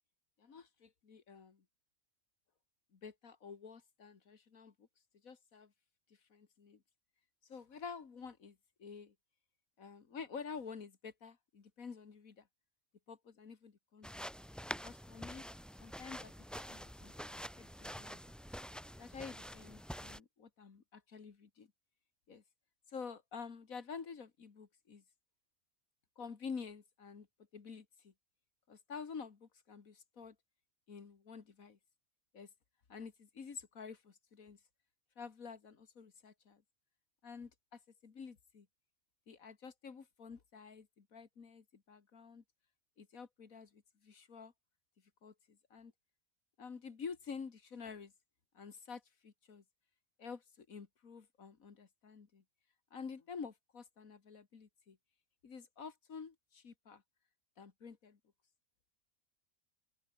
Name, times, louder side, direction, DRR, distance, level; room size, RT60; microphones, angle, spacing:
voice 1, 0.4-1.6 2.9-4.9 5.2-5.7 6.3-6.8 7.4-9.1 9.8-12.5 13.1-14.1 14.8-15.4 15.8-18.2 19.0-21.7 22.3-22.4 22.9-25.0 26.2-27.3 27.5-28.1 28.7-30.4 30.9-31.8 32.3-32.5 32.9-34.6 35.2-36.6 37.2-38.7 39.3-42.4 43.0-44.5 45.2-45.9 46.6-48.1 48.5-49.6 50.2-52.4 52.9-55.0 55.4-57.0 57.6-58.2, left 5 dB, 75° left, 2.4 m, -49 dB
sound 1, 14.0-20.2, equal, ahead, 3.0 m, -47 dB
open air
omnidirectional pair, 1.5 m